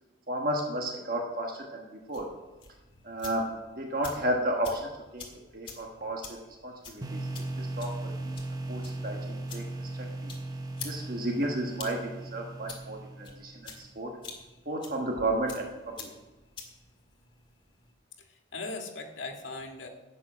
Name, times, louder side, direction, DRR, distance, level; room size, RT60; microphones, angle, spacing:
voice 1, 0.3-2.3 3.0-3.5 3.8-5.2 5.5-6.4 6.6-7.3 7.6-7.9 8.2-8.4 8.7-10.3 10.8-14.1 14.6-16.1, right 1 dB, 50° right, 1 dB, 1.3 m, -33 dB
sound 1, 2.0-17.9, left 4 dB, 25° left, 1.8 m, -49 dB
sound 2, 7.0-13.8, right 2 dB, 20° right, 0.8 m, -37 dB
voice 2, 18.2-19.9, left 3 dB, 85° left, 2 dB, 1.8 m, -39 dB
11.5 x 8.6 x 6.1 m, 1.2 s
head